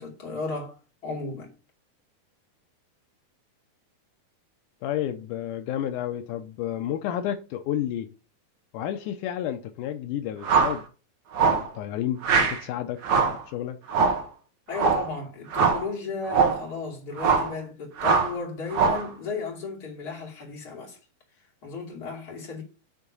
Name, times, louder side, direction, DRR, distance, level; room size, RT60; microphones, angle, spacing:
voice 1, 0.0-1.5 14.7-21.0 21.6-22.6, left 4 dB, 30° left, 2.5 m, -34 dB
voice 2, 4.8-8.1 8.7-10.9 11.4-13.8, left 11 dB, 90° left, 1.8 m, -31 dB
sound 1, 10.4-10.8 11.3-11.7 12.2-12.6 13.0-13.4 13.9-14.3 14.7-15.1 15.5-15.9 16.3-16.6 17.2-17.5 18.0-18.3 18.7-19.1, right 5 dB, 55° right, 2.4 m, -22 dB
10.5 x 3.6 x 5.4 m
omnidirectional pair, 4.4 m